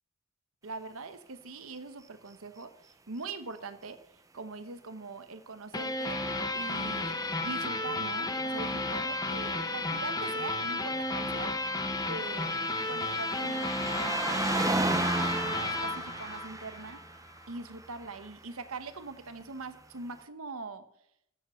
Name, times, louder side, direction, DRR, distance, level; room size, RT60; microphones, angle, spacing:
voice 1, 0.6-2.7 3.1-4.0 4.3-7.2 7.4-11.6 12.1-12.6 12.9-14.7 15.4-17.0 17.5-20.9, right 3 dB, 65° right, 10 dB, 1.0 m, -42 dB
sound 1, 5.7-17.0, left 2 dB, 15° left, 0.9 m, -33 dB
sound 2, 11.8-18.5 19.4-19.5, right 2 dB, 15° right, 0.8 m, -34 dB
14.0 x 7.4 x 5.7 m, 0.75 s
head